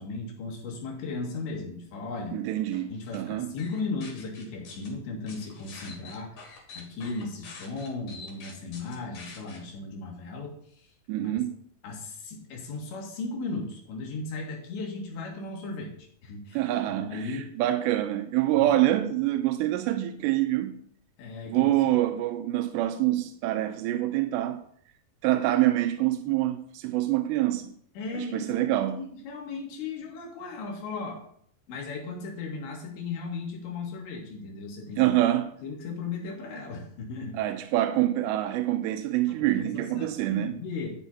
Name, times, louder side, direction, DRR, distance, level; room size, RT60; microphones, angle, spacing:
voice 1, 0.0-2.4 2.9-10.9 11.2-11.3 11.8-17.5 18.5-18.8 21.2-21.8 28.0-31.3 31.7-35.1 35.6-37.4 39.3-40.9, left 3 dB, 80° left, 4.5 m, -36 dB
voice 2, 2.3-3.5 11.1-11.5 16.5-20.8 21.5-24.6 25.2-27.7 28.1-29.0 35.0-35.5 37.3-40.6, right 14 dB, 90° right, 2.9 m, -26 dB
sound 1, 2.7-3.2 3.6-4.9 5.3-9.6, left 4 dB, 50° left, 3.4 m, -46 dB
13.0 x 9.8 x 2.8 m
omnidirectional pair, 5.0 m